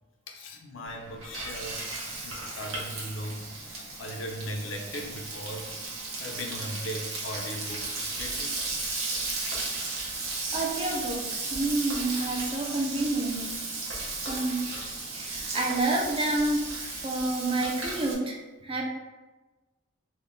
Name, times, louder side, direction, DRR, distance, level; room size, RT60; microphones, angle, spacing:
voice 1, 0.3-1.8 2.2-5.7 6.2-8.5 11.9-12.0, equal, 70° left, 2 dB, 0.5 m, -38 dB
Frying (food), 0.9-18.1, right 3 dB, 85° right, 0.8 m, -35 dB
voice 2, 10.5-13.5 14.3-14.7 15.1-18.4 18.6-18.8, right 2 dB, 25° right, -1 dB, 0.5 m, -29 dB
3.6 x 2.1 x 3.7 m, 1.2 s
head